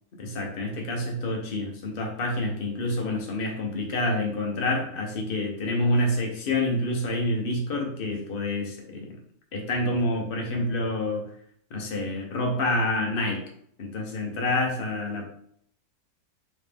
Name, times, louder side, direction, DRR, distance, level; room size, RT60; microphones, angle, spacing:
voice 1, 0.2-9.2 9.5-11.2 11.7-13.4 13.8-15.2, left 1 dB, 45° left, 1 dB, 0.9 m, -27 dB
3.1 x 3.1 x 3.4 m, 0.65 s
omnidirectional pair, 1.6 m